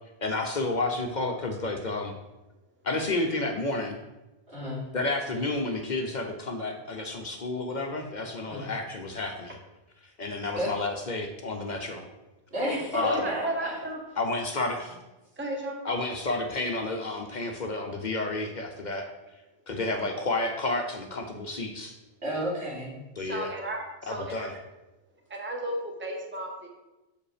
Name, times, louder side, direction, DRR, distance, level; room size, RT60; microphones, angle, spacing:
voice 1, 0.2-2.1 2.8-4.0 4.9-9.6 10.2-12.1 12.9-13.3 14.2-15.0 15.8-19.1 19.7-21.9 23.2-23.5 24.1-24.5, left 2 dB, 50° left, 4 dB, 0.8 m, -30 dB
voice 2, 4.5-4.9 8.5-8.7 10.6-10.7 12.5-13.8 22.2-22.9, equal, 80° right, -8 dB, 3.5 m, -32 dB
voice 3, 13.0-14.0 15.4-15.7 23.2-24.5 25.3-26.7, right 1 dB, 10° right, 1 dB, 0.9 m, -33 dB
6.9 x 5.0 x 4.9 m, 1.0 s
omnidirectional pair, 1.1 m